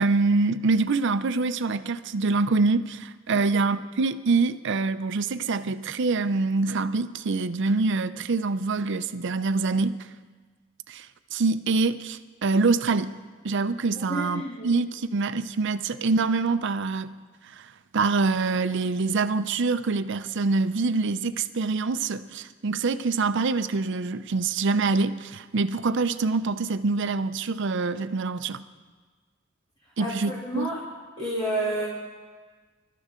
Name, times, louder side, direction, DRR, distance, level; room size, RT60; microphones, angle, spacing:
voice 1, 0.0-10.1 10.9-13.2 13.4-17.2 17.4-28.6 30.0-30.7, right 3 dB, 60° right, 12 dB, 0.6 m, -25 dB
voice 2, 14.1-14.7 30.0-30.8 31.2-31.8, right 1 dB, 25° left, -7 dB, 2.9 m, -30 dB
26.5 x 13.0 x 3.7 m, 1.4 s
head